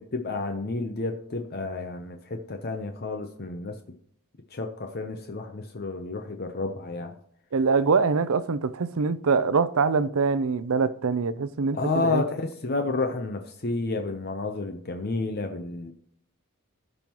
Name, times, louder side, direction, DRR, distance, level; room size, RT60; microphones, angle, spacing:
voice 1, 0.0-3.8 4.5-7.1 11.7-15.9, left 3 dB, 45° left, 0.7 m, -30 dB
voice 2, 7.5-12.2, right 4 dB, 70° right, 0.5 m, -24 dB
16.5 x 5.5 x 3.0 m
head